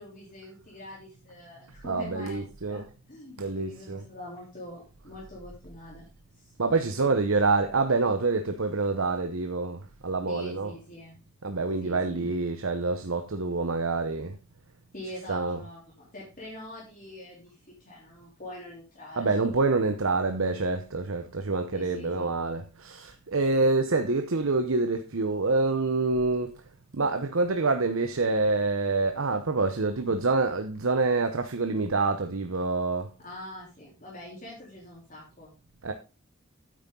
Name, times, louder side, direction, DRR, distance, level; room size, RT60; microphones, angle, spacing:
voice 1, 0.0-6.1 6.4-6.5 7.0-7.1 10.3-11.2 11.8-12.3 14.9-19.6 21.7-22.3 33.2-35.5, left 1 dB, 40° left, 3.5 m, -44 dB
voice 2, 1.8-2.9 3.4-4.0 6.6-10.8 11.4-14.4 15.0-15.7 19.2-26.6 26.9-33.1 35.8-35.9, right 3 dB, 75° right, 0.9 m, -27 dB
9.3 x 8.8 x 3.8 m
head